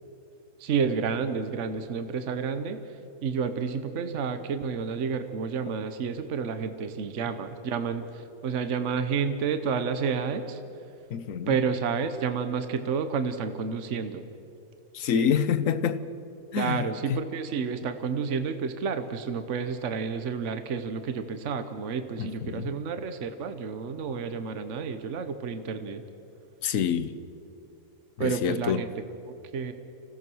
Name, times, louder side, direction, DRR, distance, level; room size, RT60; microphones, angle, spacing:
voice 1, 0.6-2.8 3.2-10.6 11.5-14.2 15.1-15.3 16.5-26.0 28.2-28.9 29.5-29.7, right 6 dB, 55° right, 1.3 m, -30 dB
voice 2, 11.1-11.6 14.9-16.0 16.5-16.8 17.1-17.2 22.2-22.7 26.6-27.2 28.2-28.9, left 8 dB, 70° left, 1.2 m, -27 dB
26.0 x 17.0 x 6.3 m
omnidirectional pair, 1.5 m